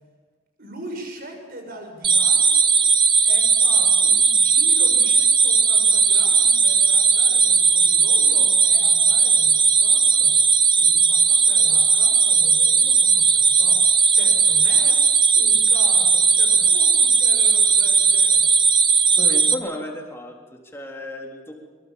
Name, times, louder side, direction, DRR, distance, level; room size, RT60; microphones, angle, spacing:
voice 1, 0.6-2.7 3.2-15.0 15.3-18.6, right 1 dB, 45° right, 3 dB, 6.6 m, -40 dB
sound 1, 2.0-19.5, right 5 dB, 25° right, 1.2 m, -17 dB
voice 2, 19.2-21.5, left 1 dB, 10° left, 0 dB, 3.6 m, -33 dB
24.0 x 23.5 x 7.3 m, 1.4 s
head